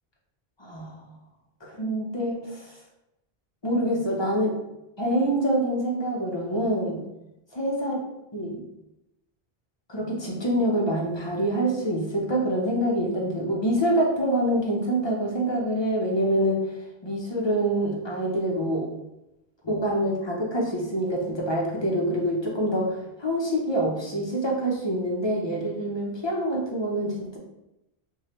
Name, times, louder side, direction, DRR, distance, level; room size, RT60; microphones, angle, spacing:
voice 1, 0.6-1.0 1.6-2.6 3.6-4.6 5.0-7.0 7.5-8.0 8.3-8.6 9.9-16.6 17.0-18.9 19.6-27.4, right 1 dB, 30° left, -2 dB, 0.7 m, -26 dB
4.6 x 2.3 x 2.9 m, 0.90 s
omnidirectional pair, 1.0 m